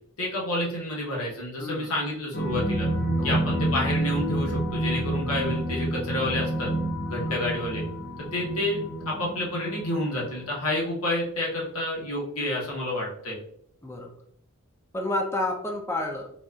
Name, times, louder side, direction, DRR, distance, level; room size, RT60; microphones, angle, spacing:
voice 1, 0.2-2.9 3.2-6.7 7.1-7.8 8.3-13.4, left 1 dB, 75° left, -3 dB, 1.1 m, -29 dB
voice 2, 1.6-1.9 3.2-3.5 7.3-7.5 13.8-14.1 14.9-16.3, left 1 dB, 10° left, 2 dB, 0.4 m, -30 dB
sound 1, 2.3-10.4, right 1 dB, 45° left, 0.8 m, -29 dB
4.0 x 2.3 x 2.4 m, 0.68 s
head